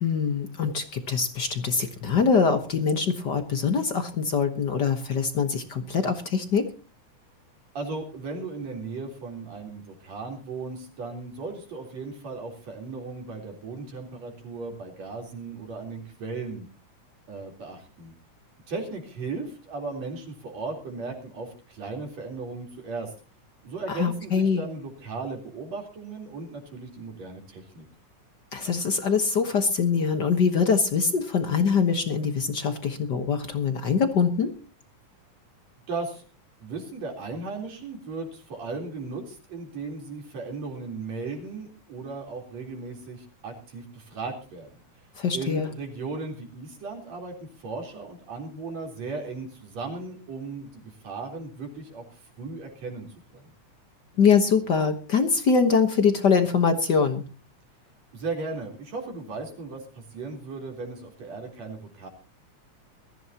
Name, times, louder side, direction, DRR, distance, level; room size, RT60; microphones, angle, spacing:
voice 1, 0.0-6.7 23.9-24.6 28.5-34.5 45.1-45.7 54.2-57.2, left 5 dB, 55° left, 7 dB, 1.2 m, -23 dB
voice 2, 7.7-16.7 17.3-18.1 18.7-23.1 23.6-27.9 35.9-36.2 36.6-44.7 45.3-53.1 53.3-53.5 58.1-62.1, right 3 dB, 60° right, 1 dB, 4.9 m, -36 dB
21.5 x 14.5 x 2.9 m, 0.36 s
omnidirectional pair, 3.5 m